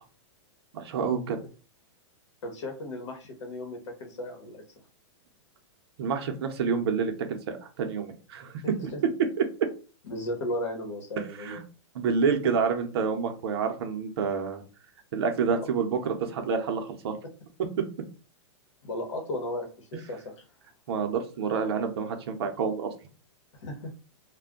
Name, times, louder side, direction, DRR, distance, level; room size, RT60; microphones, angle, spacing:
voice 1, 0.7-1.4 6.0-8.5 9.4-9.7 11.4-11.6 11.9-14.6 15.1-17.2 20.9-22.9, right 6 dB, 55° right, 5 dB, 0.6 m, -28 dB
voice 2, 2.4-4.6 8.9-9.0 10.0-11.6 15.5-15.6 18.8-20.2 23.6-23.9, left 1 dB, 70° left, 3 dB, 1.2 m, -35 dB
2.5 x 2.2 x 3.5 m, 0.36 s
hypercardioid pair, 165°, 16 cm